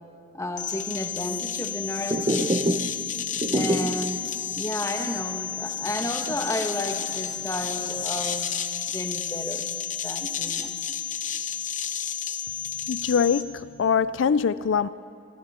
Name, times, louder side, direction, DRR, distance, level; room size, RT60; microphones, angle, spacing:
voice 1, 0.3-2.7 3.5-4.2 4.5-8.5 8.9-9.7 10.0-10.8, left 1 dB, 15° left, 1.6 m, -32 dB
sound 1, 0.6-13.4, left 8 dB, 40° left, 1.1 m, -31 dB
sound 2, 2.0-3.0 3.3-4.1 4.5-4.6 5.0-5.1 5.6-7.0 7.4-8.0, right 1 dB, 25° right, 0.7 m, -27 dB
voice 2, 12.9-14.9, left 6 dB, 85° left, 0.4 m, -23 dB
27.0 x 25.0 x 4.4 m
head